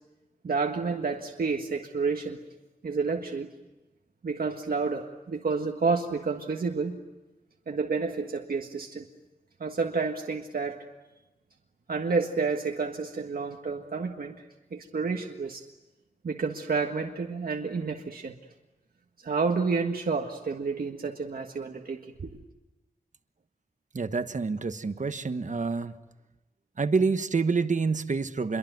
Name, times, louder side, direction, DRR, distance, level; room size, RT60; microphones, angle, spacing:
voice 1, 0.4-2.4 2.8-3.5 4.2-7.0 7.7-9.0 9.6-10.8 11.9-14.3 14.7-15.6 16.2-18.3 19.2-22.3, right 4 dB, 75° right, 2 dB, 1.7 m, -30 dB
voice 2, 23.9-25.9 26.8-28.6, right 4 dB, 55° right, 9 dB, 1.3 m, -27 dB
27.5 x 23.5 x 9.3 m, 1.0 s
wide cardioid pair, 95°, 15 cm